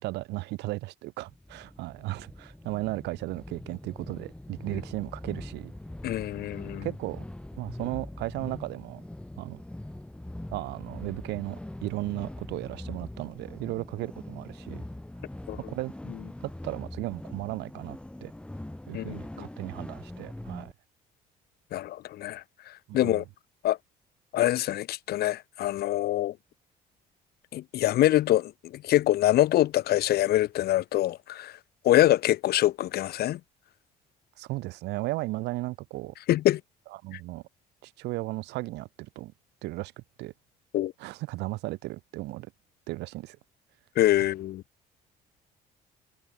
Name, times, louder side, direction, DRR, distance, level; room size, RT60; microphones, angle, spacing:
voice 1, 0.0-5.7 6.8-7.2 7.6-9.0 9.4-9.6 10.5-14.8 15.7-15.9 16.4-18.3 18.9-20.7 22.9-23.2 34.4-36.1 37.0-37.4 37.8-39.3 39.6-40.3 41.0-42.5 42.9-43.4, right 19 dB, 90° right, 4.6 m, -35 dB
sound 1, 1.2-20.7, left 1 dB, 5° left, 2.4 m, -42 dB
voice 2, 6.0-6.8 15.5-15.6 18.9-19.5 21.7-23.2 23.6-23.8 24.3-26.3 27.5-31.5 31.8-33.4 36.3-36.6 37.1-37.2 40.7-40.9 43.9-44.6, left 14 dB, 70° left, 1.5 m, -25 dB
cardioid pair, 110°, 17 cm